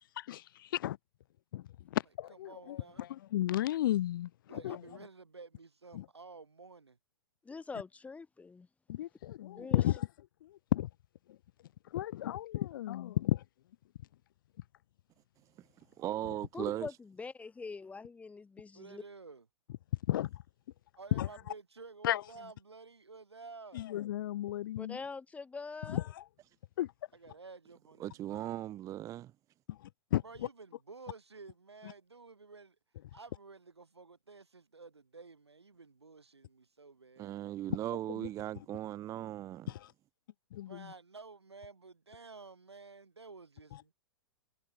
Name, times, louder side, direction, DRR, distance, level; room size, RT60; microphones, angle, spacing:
voice 1, 0.2-1.0 1.5-1.6 1.9-4.8 5.9-6.0 8.9-10.1 10.4-10.9 11.9-13.4 20.1-20.3 21.1-21.3 22.0-22.2 23.7-25.0 25.9-26.2 26.8-26.9 29.7-29.8 30.1-30.2 38.1-38.3 39.7-39.9 40.5-40.9, left 13 dB, 50° left, 0.5 m, -33 dB
voice 2, 2.3-3.1 4.5-7.0 18.7-19.5 21.0-23.8 27.1-28.5 30.2-32.8 33.1-37.3 40.7-43.9, right 4 dB, 80° right, 3.0 m, -52 dB
voice 3, 7.4-8.7 9.5-9.8 16.5-19.0 24.8-26.0, left 4 dB, 10° left, 1.3 m, -43 dB
voice 4, 16.0-16.9 28.0-29.3 37.2-39.7, right 13 dB, 25° right, 0.6 m, -38 dB
figure-of-eight pair, 105°, 14 cm